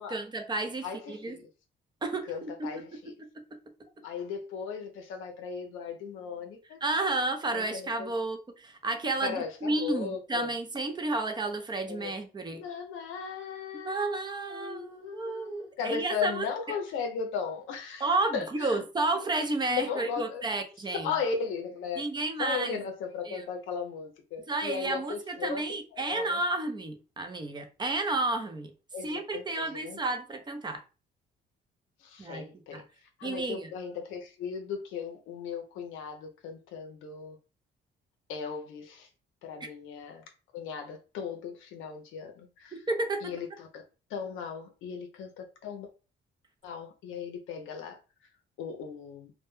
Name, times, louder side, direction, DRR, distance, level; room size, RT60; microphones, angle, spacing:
voice 1, 0.0-1.4 2.0-2.7 6.8-12.6 13.7-16.8 18.0-21.1 22.0-22.8 23.3-23.5 24.5-28.7 29.0-30.8 32.2-32.5 32.7-32.8 33.2-33.7 42.9-43.3, right 2 dB, 20° right, 0.5 m, -31 dB
voice 2, 0.8-1.5 2.3-3.1 4.0-6.8 7.5-8.1 9.2-10.5 11.9-12.1 12.5-18.8 19.2-19.3 19.7-20.4 21.0-22.0 22.4-25.6 25.9-26.4 28.9-30.0 32.0-32.8 33.2-37.4 38.3-39.1 39.4-40.2 40.5-42.7 43.2-43.8 44.1-45.9 46.6-48.0 48.6-49.3, left 6 dB, 85° left, 0.5 m, -37 dB
2.1 x 2.1 x 3.0 m
cardioid pair, 90°, 20 cm